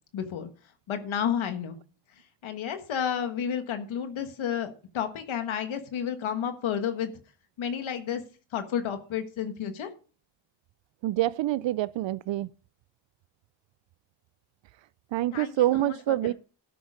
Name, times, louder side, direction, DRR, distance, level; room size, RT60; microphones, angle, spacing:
voice 1, 0.1-0.5 0.9-1.8 2.4-7.1 7.6-8.2 8.5-9.9 15.3-16.3, left 8 dB, 85° left, 1.5 m, -31 dB
voice 2, 11.0-12.5 15.1-16.3, right 15 dB, 70° right, 0.5 m, -26 dB
13.0 x 6.4 x 5.0 m
cardioid pair, 55°, 47 cm